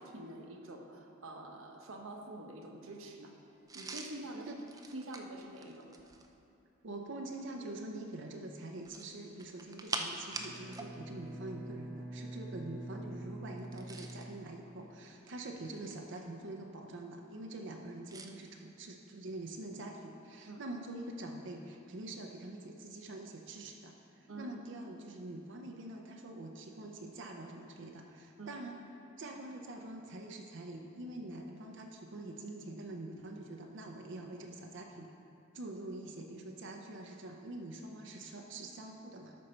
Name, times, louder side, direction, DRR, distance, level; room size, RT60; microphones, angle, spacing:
voice 1, 0.0-3.3 3.7-4.5 4.9-5.9 20.5-20.6 24.3-24.5 28.4-28.5, right 2 dB, 80° right, 2 dB, 1.0 m, -46 dB
sound 1, 3.7-6.3 8.8-10.9 11.2-11.4 13.6-14.3 15.1-16.2 18.1-18.3, right 3 dB, 15° right, 0.5 m, -44 dB
voice 2, 6.8-28.8 29.2-35.1 35.5-39.3, right 2 dB, 65° right, 2 dB, 0.6 m, -45 dB
Bowed string instrument, 10.3-15.0, right 1 dB, 10° left, 1.4 m, -46 dB
13.0 x 5.4 x 4.4 m, 2.7 s
head